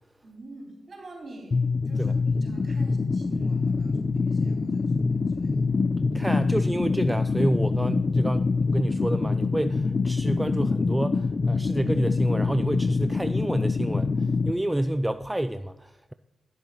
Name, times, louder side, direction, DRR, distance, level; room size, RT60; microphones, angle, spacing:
voice 1, 0.2-1.6 1.9-5.7, right 2 dB, 45° right, 3.6 m, -46 dB
sound 1, 1.5-14.5, left 4 dB, 45° left, 0.5 m, -25 dB
voice 2, 6.1-16.1, right 1 dB, 10° right, 0.3 m, -28 dB
10.0 x 7.0 x 5.7 m
cardioid pair, 70°, 0 cm